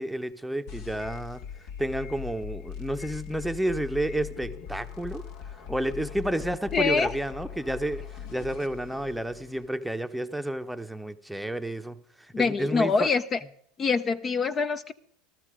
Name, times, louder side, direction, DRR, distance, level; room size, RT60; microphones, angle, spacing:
voice 1, 0.0-1.4 1.8-5.2 5.7-12.0 12.4-13.1, right 1 dB, ahead, 8 dB, 0.9 m, -31 dB
sound 1, 0.7-9.7, left 8 dB, 60° left, 1.8 m, -41 dB
voice 2, 6.7-7.1 12.3-13.4 13.8-14.9, left 4 dB, 35° left, 11 dB, 0.8 m, -25 dB
15.0 x 13.5 x 5.0 m, 0.62 s
hypercardioid pair, 85°, 0 cm